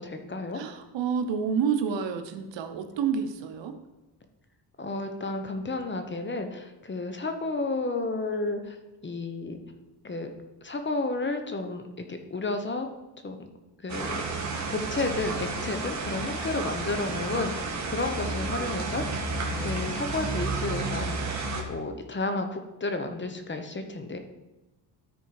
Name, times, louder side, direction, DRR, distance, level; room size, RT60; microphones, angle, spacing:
voice 1, 0.0-0.6 4.8-8.8 9.0-9.6 10.0-10.3 10.6-12.9 13.2-13.4 13.8-14.1 14.7-19.2 19.6-24.2, left 3 dB, 25° left, 6 dB, 1.0 m, -32 dB
voice 2, 0.5-3.8, right 6 dB, 75° right, 7 dB, 1.0 m, -29 dB
sound 1, 13.9-21.6, right 3 dB, 40° right, 1.6 m, -31 dB
13.0 x 4.5 x 4.8 m, 1.0 s
cardioid pair, 110°, 44 cm